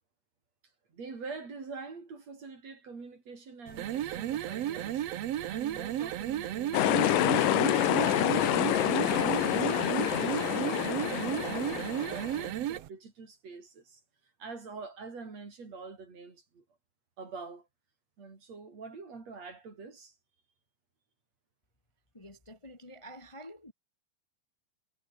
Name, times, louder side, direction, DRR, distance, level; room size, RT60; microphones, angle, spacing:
voice 1, 0.9-5.0 5.5-7.4 7.9-14.0 14.4-16.6 17.2-17.7 18.2-20.1, right 4 dB, 40° right, 5.9 m, -45 dB
sound 1, 3.7-12.9, right 12 dB, 75° right, 1.4 m, -34 dB
sound 2, 6.7-12.5, left 15 dB, 70° left, 2.2 m, -27 dB
voice 2, 22.1-23.7, equal, 30° left, 0.5 m, -48 dB
omnidirectional pair, 4.6 m